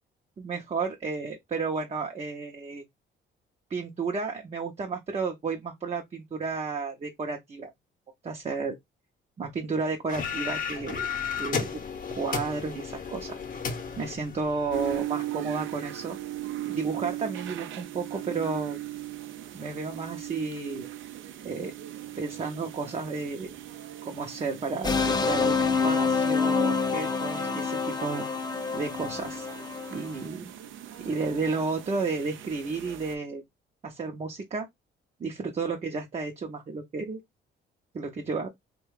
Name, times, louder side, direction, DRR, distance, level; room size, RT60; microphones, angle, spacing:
voice 1, 0.4-2.8 3.7-7.7 8.2-8.7 9.4-11.1 11.4-11.7 12.1-13.4 14.0-16.2 16.7-18.8 19.5-20.8 21.4-21.7 22.2-23.5 24.0-28.3 28.7-29.5 29.9-30.5 31.0-33.4 33.8-34.7 35.2-37.2 37.9-38.5, right 4 dB, 35° right, 0.6 m, -32 dB
sound 1, 10.1-15.0, left 6 dB, 45° left, 0.8 m, -34 dB
sound 2, 14.7-33.2, right 13 dB, 75° right, 0.5 m, -39 dB
sound 3, 24.8-30.2, left 5 dB, 20° left, 0.5 m, -27 dB
2.8 x 2.2 x 3.1 m
cardioid pair, 90°, 20 cm